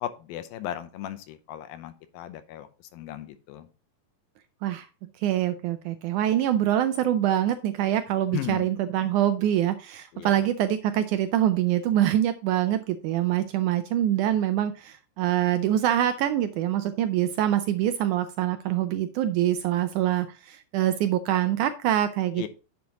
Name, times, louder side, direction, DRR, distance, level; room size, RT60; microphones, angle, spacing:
voice 1, 0.0-3.7 8.3-8.7 10.1-10.5 22.4-22.5, left 12 dB, 90° left, 10 dB, 2.6 m, -36 dB
voice 2, 5.2-22.5, right 12 dB, 85° right, 10 dB, 1.8 m, -25 dB
10.5 x 7.5 x 2.9 m, 0.33 s
omnidirectional pair, 4.1 m